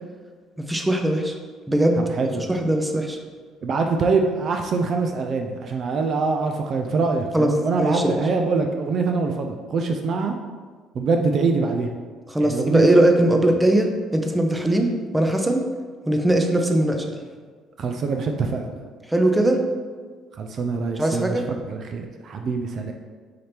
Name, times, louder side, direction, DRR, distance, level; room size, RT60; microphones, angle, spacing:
voice 1, 0.6-1.4 1.7-2.0 2.5-3.2 7.3-7.5 7.8-8.2 12.3-15.6 16.1-17.2 19.1-19.6 21.0-21.4, right 1 dB, 10° right, 4 dB, 0.6 m, -20 dB
voice 2, 2.0-2.5 3.6-10.3 10.9-11.9 12.4-12.9 17.8-18.8 20.4-22.9, right 4 dB, 55° right, 4 dB, 0.4 m, -24 dB
5.7 x 2.8 x 3.3 m, 1.5 s
supercardioid pair, 75°, 0 cm